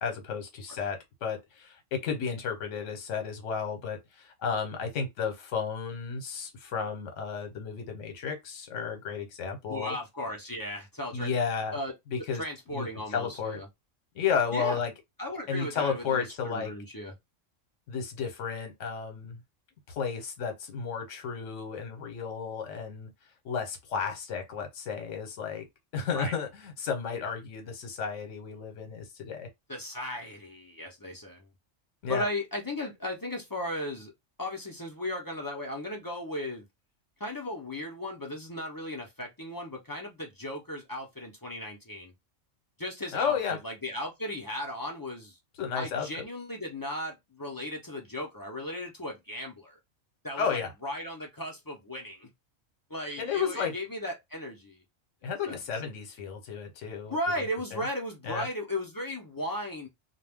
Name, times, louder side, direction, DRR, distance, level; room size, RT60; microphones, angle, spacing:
voice 1, 0.0-10.0 11.1-11.8 12.1-12.4 12.7-13.6 14.1-14.9 15.5-16.7 17.9-19.4 19.9-23.1 23.4-25.7 25.9-29.5 32.0-32.2 43.1-43.6 45.6-46.2 50.4-50.7 53.2-53.7 55.2-57.2 57.7-57.8 58.2-58.5, left 6 dB, 70° left, 1.1 m, -33 dB
voice 2, 9.7-11.4 11.7-11.9 12.3-13.7 14.5-14.8 15.2-17.1 26.1-26.3 29.7-31.5 32.1-34.1 34.4-36.6 37.2-42.1 42.8-43.3 43.6-45.4 45.8-49.8 50.2-52.3 52.9-54.8 55.5-55.6 57.1-59.9, left 1 dB, 25° left, 0.5 m, -36 dB
2.3 x 2.2 x 3.4 m
omnidirectional pair, 1.3 m